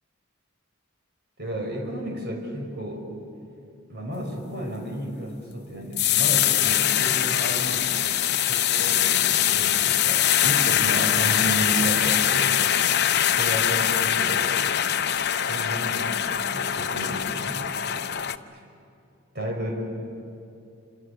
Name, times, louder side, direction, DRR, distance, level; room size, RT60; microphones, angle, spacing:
voice 1, 1.4-3.1 3.9-8.0 8.4-12.6 13.3-14.6 15.4-18.1 18.5-18.6 19.3-19.8, right 1 dB, 55° right, 1 dB, 5.4 m, -32 dB
sound 1, 6.0-18.4, left 10 dB, 55° left, 0.7 m, -23 dB
28.0 x 26.0 x 6.7 m, 2.7 s
head